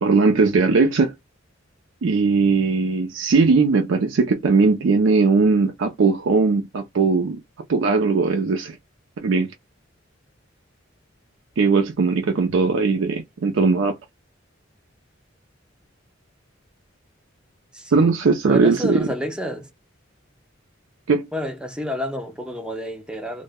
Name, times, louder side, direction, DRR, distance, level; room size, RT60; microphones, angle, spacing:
voice 1, 0.0-1.1 2.0-7.4 7.7-8.8 9.2-9.5 11.6-14.0 17.9-19.0 21.1-21.3, right 4 dB, 70° right, 0.4 m, -19 dB
voice 2, 12.5-13.1 17.7-18.1 18.5-19.7 21.3-23.4, equal, 5° right, 0.5 m, -30 dB
2.1 x 2.0 x 3.4 m
head